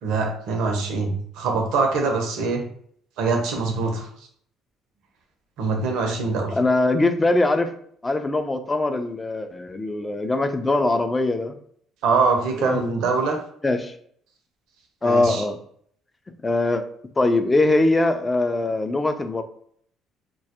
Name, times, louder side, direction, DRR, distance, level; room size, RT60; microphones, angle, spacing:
voice 1, 0.0-2.7 3.2-4.1 5.6-6.6 12.0-13.4 15.0-15.4, right 4 dB, 80° right, 2 dB, 0.5 m, -23 dB
voice 2, 6.6-7.7 8.0-11.6 12.6-12.9 13.6-13.9 15.0-15.6 16.4-16.8 17.2-19.4, left 2 dB, 20° left, 8 dB, 0.3 m, -22 dB
2.2 x 2.0 x 2.7 m, 0.62 s
supercardioid pair, 75°, 0 cm